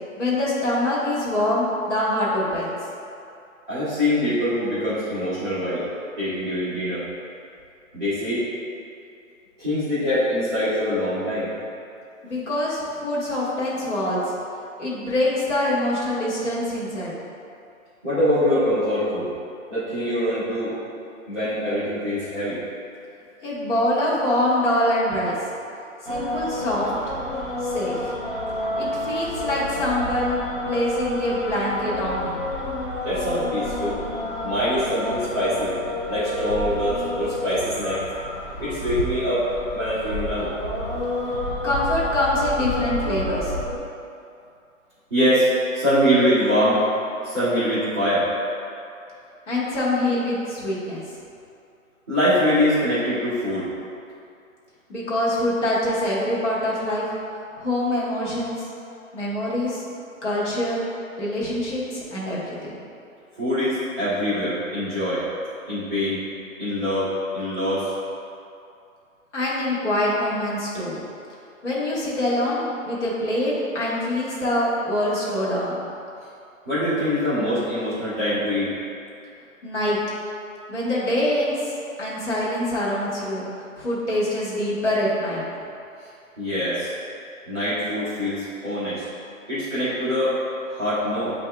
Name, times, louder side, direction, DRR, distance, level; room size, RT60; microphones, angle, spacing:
voice 1, 0.2-2.7 12.2-14.2 14.8-17.1 23.4-25.4 26.0-26.9 27.6-28.1 28.8-32.4 41.6-43.5 49.5-51.0 54.9-57.0 57.6-58.7 59.1-59.8 60.2-60.9 61.2-62.7 69.3-71.0 71.6-75.8 79.6-80.0 80.7-81.6 82.0-83.5 83.8-85.4, left 1 dB, 55° left, -7 dB, 1.3 m, -24 dB
voice 2, 3.7-5.8 6.2-7.0 7.9-8.4 9.6-11.5 18.0-19.3 19.7-20.8 21.3-22.6 33.0-34.0 34.4-35.7 36.1-38.0 38.6-39.5 39.7-40.5 45.1-45.5 45.7-46.8 47.2-48.2 52.1-53.7 63.4-65.2 65.7-66.2 66.6-67.1 67.3-67.9 76.6-78.7 86.4-86.9 87.5-89.0 89.5-90.3 90.7-91.3, equal, ahead, -20 dB, 0.8 m, -23 dB
sound 1, 26.1-43.8, left 1 dB, 40° left, 0.4 m, -29 dB
7.8 x 2.7 x 2.2 m, 2.6 s
hypercardioid pair, 175°, 41 cm